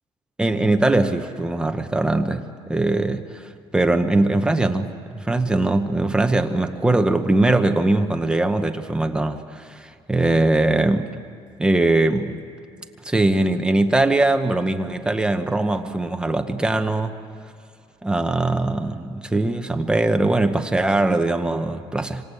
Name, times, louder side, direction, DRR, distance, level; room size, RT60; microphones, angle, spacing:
voice 1, 0.4-11.1 11.6-12.4 13.0-17.1 18.0-22.2, right 2 dB, 10° right, 6 dB, 0.9 m, -21 dB
27.5 x 25.5 x 8.3 m, 2.4 s
cardioid pair, 175°, 11 cm